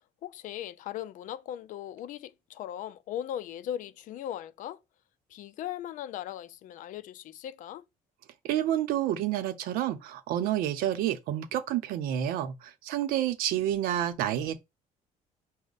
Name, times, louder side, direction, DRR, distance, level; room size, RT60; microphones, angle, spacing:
voice 1, 0.2-4.8 5.3-7.8, left 11 dB, 65° left, 0.4 m, -38 dB
voice 2, 8.4-14.6, right 11 dB, 85° right, 0.7 m, -29 dB
6.1 x 2.1 x 4.0 m
cardioid pair, 130°, 15 cm